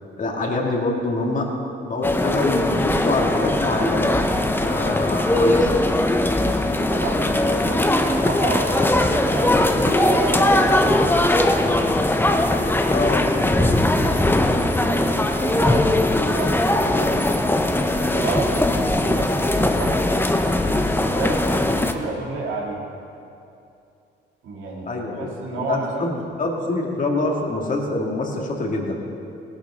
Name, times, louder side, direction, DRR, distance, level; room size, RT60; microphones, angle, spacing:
voice 1, 0.2-1.5 1.8-4.1 4.6-5.7 12.9-13.3 24.9-29.0, left 2 dB, 40° left, 0 dB, 2.3 m, -25 dB
sound 1, 2.0-21.9, left 1 dB, 10° left, 0.9 m, -20 dB
voice 2, 6.9-11.8 12.5-16.0 16.2-17.1 17.9-20.0 20.6-22.8 24.4-26.2, right 3 dB, 80° right, -3 dB, 2.8 m, -31 dB
18.0 x 12.0 x 3.9 m, 2.6 s
cardioid pair, 90°, 20 cm